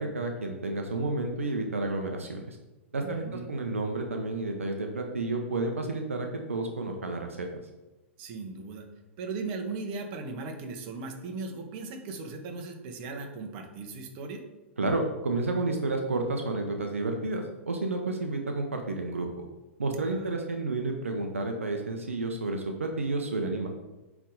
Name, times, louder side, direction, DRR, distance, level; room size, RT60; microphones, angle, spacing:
voice 1, 0.0-2.6 2.9-7.5 14.8-19.3 19.8-23.7, right 2 dB, 80° right, 3 dB, 0.9 m, -31 dB
voice 2, 3.0-3.5 8.2-8.9 9.2-14.4 20.1-20.4, right 3 dB, 45° right, 4 dB, 1.2 m, -38 dB
8.3 x 3.6 x 3.9 m, 1.0 s
figure-of-eight pair, 105°, 7 cm